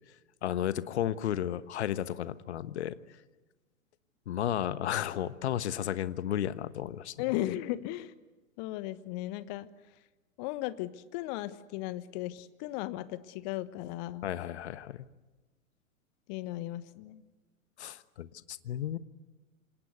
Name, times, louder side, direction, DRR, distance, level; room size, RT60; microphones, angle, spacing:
voice 1, 0.4-2.9 4.3-7.1 14.2-15.1 17.8-19.0, left 11 dB, 50° left, 15 dB, 1.3 m, -33 dB
voice 2, 7.2-8.1 8.6-9.7 10.4-14.3 16.3-17.2, left 15 dB, 30° left, 14 dB, 1.3 m, -36 dB
27.0 x 26.5 x 8.1 m, 1.2 s
figure-of-eight pair, 110°, 42 cm